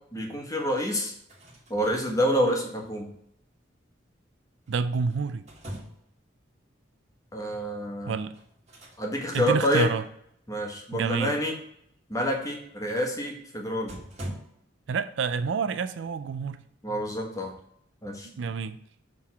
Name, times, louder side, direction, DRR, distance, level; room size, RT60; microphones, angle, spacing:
voice 1, 0.1-1.1 1.7-3.1 7.3-8.2 9.0-9.9 10.5-11.5 12.1-14.0 16.8-17.5 18.0-18.3, equal, 15° left, 1.3 m, -27 dB
sound 1, 1.1-2.0 4.7-6.2 8.3-9.0 9.3-9.5 13.3-13.4 13.9-14.4, right 1 dB, 35° right, 1.9 m, -42 dB
voice 2, 4.7-5.4 8.1-8.3 9.3-10.0 10.9-11.4 14.9-16.6 18.2-18.8, right 5 dB, 65° right, 0.4 m, -28 dB
6.7 x 3.7 x 5.9 m
head